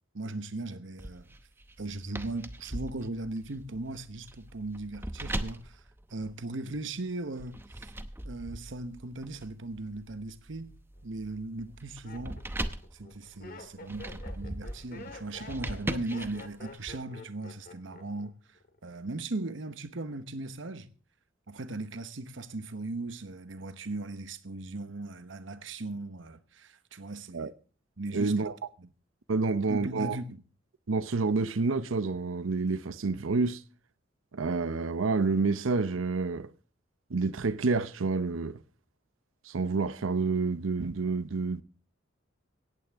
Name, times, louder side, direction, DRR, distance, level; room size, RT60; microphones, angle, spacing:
voice 1, 0.1-1.3 1.8-5.8 6.1-7.9 8.2-10.8 11.0-12.4 12.9-20.9 21.5-27.5 28.0-28.3 28.8-28.9 29.4-30.4, right 2 dB, 70° right, 1.0 m, -38 dB
sound 1, 1.0-6.8 7.4-16.9, right 1 dB, 10° right, 0.8 m, -40 dB
Laughter, 10.6-11.0 11.7-18.3 18.6-19.1, left 3 dB, 50° left, 1.8 m, -47 dB
voice 2, 28.1-28.5 29.3-30.2 30.9-33.6 34.3-36.5 37.1-38.6 39.5-41.6, right 4 dB, 90° right, 0.7 m, -28 dB
17.5 x 14.5 x 3.5 m
head